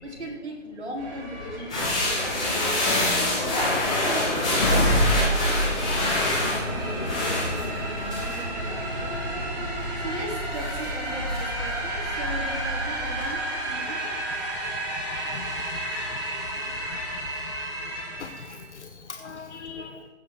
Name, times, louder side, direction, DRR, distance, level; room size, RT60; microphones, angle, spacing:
voice 1, 0.0-2.7 3.5-9.1 10.0-14.1 16.5-16.6, right 1 dB, 60° right, -3 dB, 4.1 m, -38 dB
sound 1, 1.0-18.7, right 1 dB, 20° right, 4.6 m, -33 dB
sound 2, 1.7-13.7, equal, 35° left, 3.6 m, -30 dB
sound 3, 1.7-13.3, left 1 dB, 5° left, 0.8 m, -28 dB
voice 2, 17.1-17.4 18.2-20.1, left 5 dB, 70° left, 6 dB, 0.9 m, -40 dB
15.5 x 6.9 x 4.6 m, 1.2 s
figure-of-eight pair, 165°, 37 cm